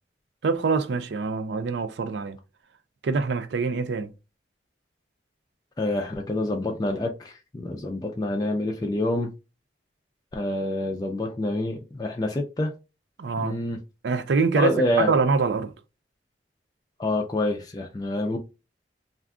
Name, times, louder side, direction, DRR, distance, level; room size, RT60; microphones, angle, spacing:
voice 1, 0.4-2.4 3.0-4.1 13.2-13.6 14.0-15.7, right 4 dB, 80° right, 0.4 m, -25 dB
voice 2, 5.8-9.3 10.3-12.7 13.4-13.8 14.6-15.1 17.0-18.4, left 1 dB, 20° left, 0.4 m, -27 dB
2.4 x 2.3 x 3.6 m
head